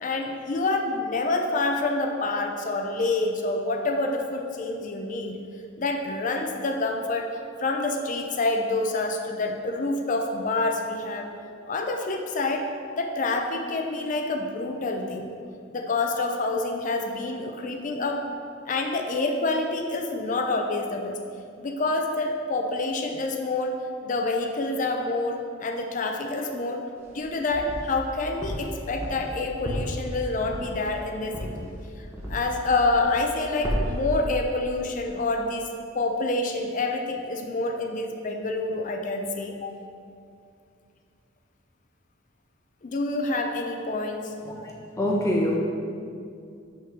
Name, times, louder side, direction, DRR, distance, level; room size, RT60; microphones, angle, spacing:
voice 1, 0.0-5.4 5.8-11.3 11.7-12.7 13.0-15.3 15.7-18.3 18.7-21.2 21.6-23.8 24.0-26.8 27.1-31.7 32.0-35.6 35.9-39.7 42.8-44.3, left 2 dB, 40° left, 3 dB, 0.5 m, -27 dB
sound 1, 27.0-28.0 28.4-32.6 32.9-33.4 33.6-34.1, equal, 15° right, 1.0 m, -33 dB
voice 2, 44.4-45.6, left 1 dB, 15° left, -2 dB, 0.8 m, -26 dB
5.8 x 3.7 x 5.9 m, 2.3 s
head